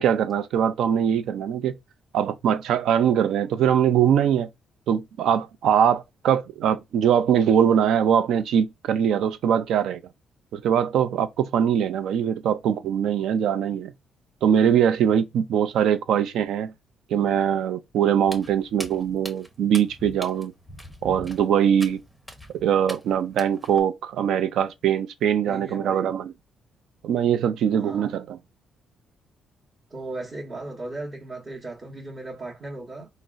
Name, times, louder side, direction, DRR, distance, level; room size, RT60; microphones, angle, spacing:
voice 1, 0.0-1.7 2.1-4.5 4.9-10.0 10.5-13.9 14.4-16.7 17.1-20.5 21.0-22.0 22.5-26.3 27.0-28.4, right 8 dB, 75° right, 0.4 m, -22 dB
Walk footsteps, 18.2-23.8, equal, 5° right, 0.7 m, -42 dB
voice 2, 25.4-26.1 27.7-28.1 29.9-33.1, right 2 dB, 40° right, 1.1 m, -36 dB
3.8 x 2.0 x 2.4 m
cardioid pair, 90°, 0 cm